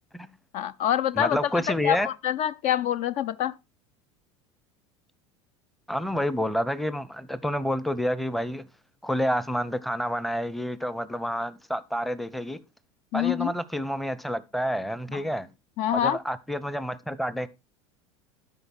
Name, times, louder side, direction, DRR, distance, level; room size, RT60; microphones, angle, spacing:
voice 1, 0.5-1.4 1.8-3.5 13.1-13.5 15.1-15.2 15.8-16.2, left 11 dB, 50° left, 0.4 m, -26 dB
voice 2, 1.1-2.1 5.9-8.7 9.0-12.6 13.1-15.5 15.9-17.5, equal, ahead, 0.7 m, -29 dB
12.5 x 5.2 x 4.3 m
hypercardioid pair, 85°, 16 cm